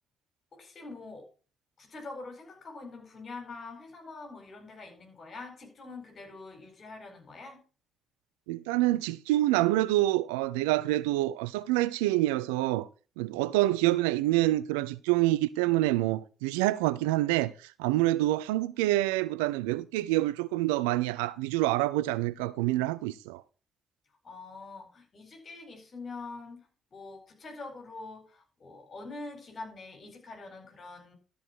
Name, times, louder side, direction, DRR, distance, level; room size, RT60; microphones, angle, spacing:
voice 1, 0.5-1.3 1.8-7.6 24.2-31.2, left 3 dB, 45° left, 4.6 m, -44 dB
voice 2, 8.5-12.9 13.2-23.4, right 17 dB, 75° right, 0.4 m, -27 dB
12.5 x 5.0 x 6.1 m
figure-of-eight pair, 45°, 0 cm